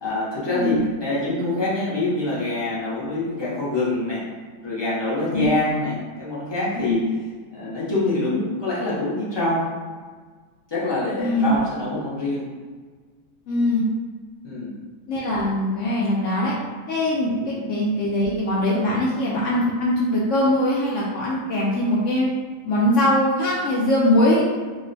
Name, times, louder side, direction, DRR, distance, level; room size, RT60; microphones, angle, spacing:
voice 1, 0.0-4.3 4.6-7.2 7.5-9.7 10.7-12.5 14.4-14.8 17.4-17.7, left 2 dB, 35° left, -9 dB, 0.4 m, -25 dB
voice 2, 11.2-11.6 13.5-13.8 15.1-16.5 16.9-22.3 22.7-24.4, left 1 dB, 75° left, -6 dB, 0.7 m, -21 dB
2.9 x 2.1 x 3.9 m, 1.5 s
omnidirectional pair, 1.8 m